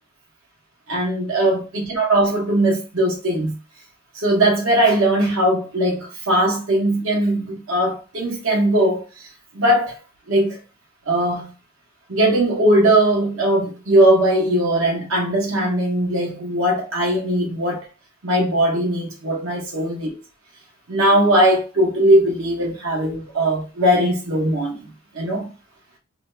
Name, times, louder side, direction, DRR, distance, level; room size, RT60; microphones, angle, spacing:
voice 1, 0.9-3.6 4.1-9.3 9.5-10.0 10.3-10.6 11.1-11.5 12.1-17.9 18.2-20.2 20.9-24.9 25.1-25.5, right 1 dB, 75° right, 1.0 m, -19 dB
2.7 x 2.2 x 3.1 m
head